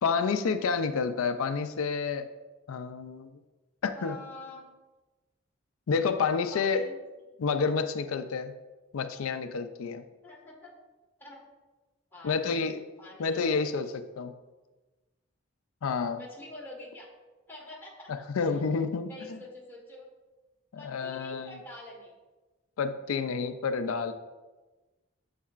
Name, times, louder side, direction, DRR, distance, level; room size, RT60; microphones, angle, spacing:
voice 1, 0.0-2.3 2.7-3.3 3.8-4.2 5.9-6.9 7.4-8.5 8.9-10.0 12.2-12.8 13.2-14.3 15.8-16.2 18.1-19.4 20.7-21.5 22.8-24.1, left 5 dB, 85° left, 9 dB, 0.4 m, -29 dB
voice 2, 3.9-4.7 6.5-7.0 7.3-7.4 10.2-10.7 11.2-11.4 12.1-12.4 13.0-13.8 16.1-17.1 17.5-18.6 19.0-20.1 20.8-22.1, left 1 dB, 10° left, -3 dB, 1.4 m, -47 dB
8.4 x 7.3 x 2.4 m, 1.2 s
head